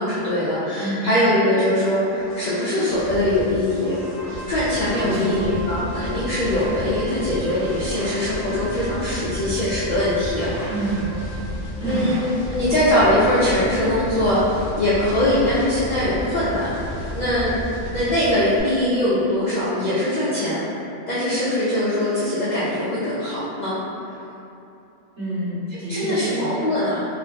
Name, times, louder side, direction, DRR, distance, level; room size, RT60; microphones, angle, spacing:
voice 1, 0.0-10.5 11.8-17.5 17.9-20.6 21.1-23.8 25.9-27.1, left 1 dB, 70° left, -11 dB, 0.4 m, -22 dB
voice 2, 0.8-1.1 4.9-5.4 10.7-11.1 11.8-12.1 25.2-26.4, right 2 dB, 20° right, -16 dB, 1.6 m, -27 dB
sound 1, 1.8-18.6, equal, 10° left, 0.8 m, -33 dB
Wind instrument woodwind instrument, 3.9-11.5, right 2 dB, 80° right, 1.3 m, -40 dB
3.0 x 2.4 x 2.5 m, 2.8 s
omnidirectional pair, 1.3 m